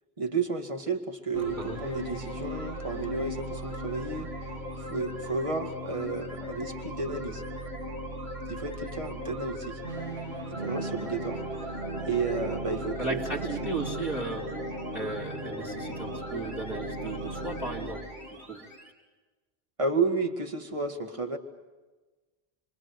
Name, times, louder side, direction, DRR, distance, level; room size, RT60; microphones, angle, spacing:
voice 1, 0.2-4.3 4.8-7.4 8.5-9.8 10.6-11.7 12.1-13.2 13.6-13.7 19.8-21.4, right 4 dB, 30° right, 4 dB, 2.1 m, -32 dB
sound 1, 1.3-18.9, equal, 90° right, 4.4 m, -36 dB
voice 2, 13.0-14.5 14.9-18.0 18.5-18.6, right 2 dB, ahead, 0 dB, 3.1 m, -35 dB
29.0 x 24.5 x 7.9 m, 1.2 s
omnidirectional pair, 1.0 m